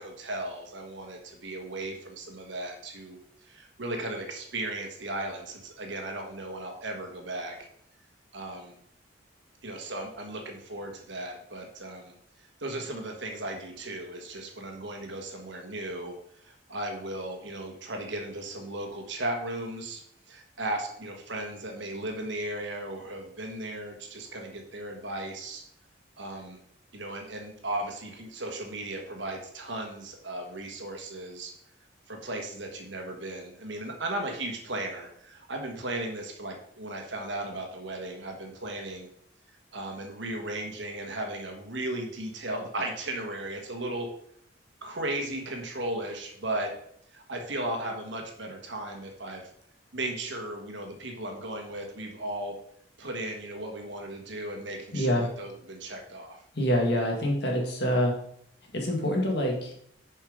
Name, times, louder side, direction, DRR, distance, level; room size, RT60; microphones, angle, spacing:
voice 1, 0.0-7.6 8.3-8.7 9.6-12.1 12.4-16.1 16.4-25.6 26.2-26.6 26.9-31.5 32.1-39.1 39.7-44.1 44.8-46.7 47.1-49.5 49.9-52.6 53.0-56.4, right 1 dB, 65° right, 3 dB, 1.3 m, -36 dB
voice 2, 54.9-55.3 56.5-58.1 58.7-59.9, equal, 55° left, 0 dB, 1.8 m, -26 dB
7.1 x 4.5 x 5.1 m, 0.69 s
head